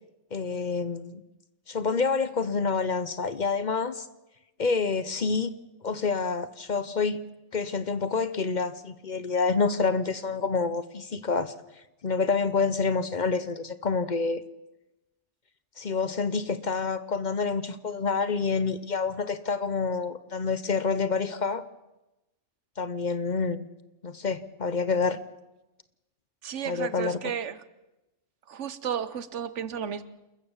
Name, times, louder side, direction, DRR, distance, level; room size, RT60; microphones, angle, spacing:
voice 1, 0.3-1.2 1.7-4.1 4.6-5.5 5.8-7.2 7.5-11.5 12.0-14.4 15.8-21.6 22.8-23.7 24.0-25.2 26.7-27.2, left 4 dB, 45° left, 14 dB, 0.9 m, -27 dB
voice 2, 26.4-27.6 28.5-30.0, right 8 dB, 85° right, 15 dB, 1.3 m, -33 dB
27.5 x 14.0 x 7.2 m, 0.98 s
omnidirectional pair, 1.2 m